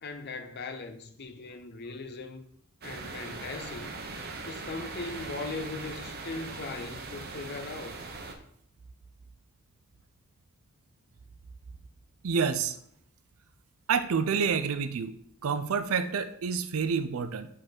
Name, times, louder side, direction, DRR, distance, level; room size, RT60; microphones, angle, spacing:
voice 1, 0.0-2.5 2.8-3.9 4.4-8.0, left 3 dB, 50° left, 0.6 m, -39 dB
sound 1, 2.8-8.3, right 3 dB, 45° right, 0.8 m, -40 dB
voice 2, 12.2-12.8 13.9-15.1 15.4-17.5, right 6 dB, 75° right, 0.4 m, -28 dB
5.3 x 3.7 x 5.8 m
head